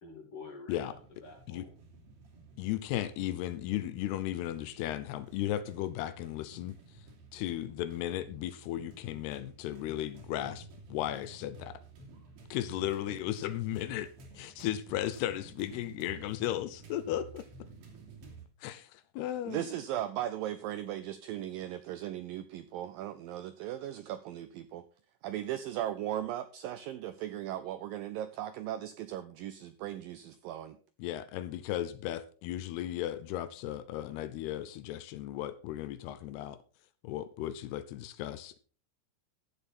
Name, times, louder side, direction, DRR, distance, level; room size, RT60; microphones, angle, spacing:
voice 1, 0.0-1.7, left 4 dB, 40° left, 2.9 m, -48 dB
sound 1, 0.9-18.5, right 3 dB, 65° right, 4.2 m, -53 dB
voice 2, 2.6-6.8 7.3-11.8 12.5-14.1 14.3-17.5 18.6-19.7 31.0-36.6 37.0-38.6, left 13 dB, 80° left, 2.7 m, -35 dB
voice 3, 19.5-24.8 25.2-30.8, right 12 dB, 80° right, 2.0 m, -37 dB
15.0 x 7.3 x 4.3 m
omnidirectional pair, 4.8 m